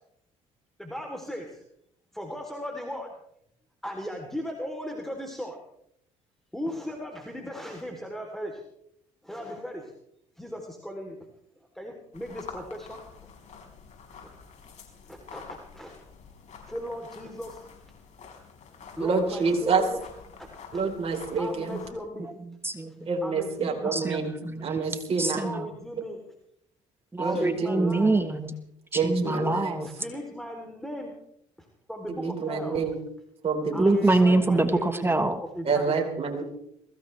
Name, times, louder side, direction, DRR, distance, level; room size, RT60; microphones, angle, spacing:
voice 1, 0.8-1.6 2.1-3.1 3.8-5.6 6.5-8.6 9.2-9.9 10.4-11.2 11.8-13.3 15.1-15.9 16.7-17.6 19.0-20.0 20.7-20.8 21.4-22.3 23.2-24.0 25.3-26.2 27.2-28.2 29.9-31.1 31.9-32.8 33.7-35.3 35.6-35.9, equal, ahead, 2 dB, 3.4 m, -37 dB
sound 1, 12.1-21.9, left 5 dB, 55° left, 5.4 m, -48 dB
voice 2, 19.0-19.8 20.7-21.8 23.1-24.3 24.6-25.5 27.2-28.1 28.9-29.8 32.1-33.0 33.4-33.9 34.3-34.5 35.6-36.4, right 4 dB, 40° right, 1 dB, 4.1 m, -28 dB
voice 3, 22.2-23.1 23.9-24.8 25.2-25.7 27.1-28.5 28.9-29.9 33.8-35.4, right 2 dB, 15° right, 8 dB, 1.4 m, -25 dB
22.5 x 16.5 x 3.4 m, 0.74 s
supercardioid pair, 65°, 15 cm